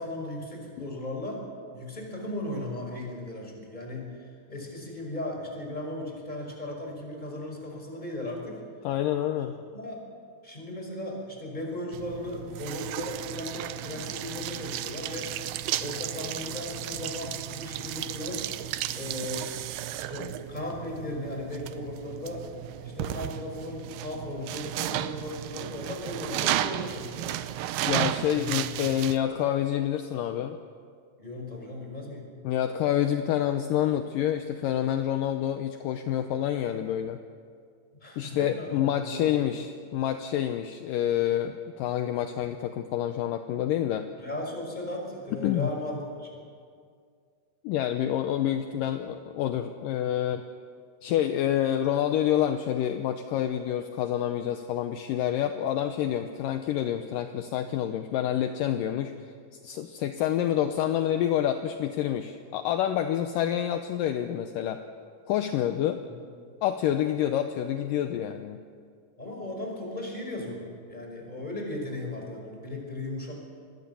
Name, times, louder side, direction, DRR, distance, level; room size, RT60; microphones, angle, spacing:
voice 1, 0.0-1.4 1.7-8.6 9.5-10.0 10.4-15.3 15.8-18.4 18.9-19.5 20.1-22.5 22.8-27.4 28.3-28.5 31.2-32.3 38.0-39.5 44.2-46.3 66.0-66.2 69.2-73.3, left 1 dB, 10° left, 1 dB, 5.2 m, -36 dB
voice 2, 8.8-9.6 27.9-30.6 32.4-37.2 38.2-44.1 45.4-45.7 47.6-50.4 51.0-59.1 59.6-64.8 65.3-66.0 66.6-68.6, left 11 dB, 75° left, 7 dB, 2.1 m, -28 dB
sound 1, 11.9-29.2, right 13 dB, 80° right, 2.7 m, -34 dB
26.0 x 20.5 x 7.1 m, 2.1 s
omnidirectional pair, 4.6 m